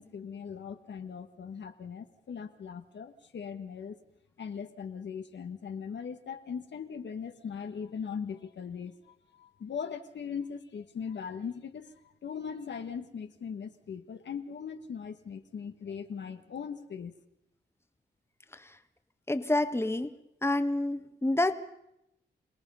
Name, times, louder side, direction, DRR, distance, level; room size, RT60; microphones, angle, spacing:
voice 1, 0.0-4.0 4.4-11.9 12.2-17.1, left 6 dB, 70° left, 7 dB, 1.4 m, -39 dB
voice 2, 19.3-20.1 20.4-21.6, left 2 dB, 15° left, 8 dB, 1.5 m, -28 dB
27.0 x 18.0 x 5.5 m, 0.82 s
supercardioid pair, 45°, 19 cm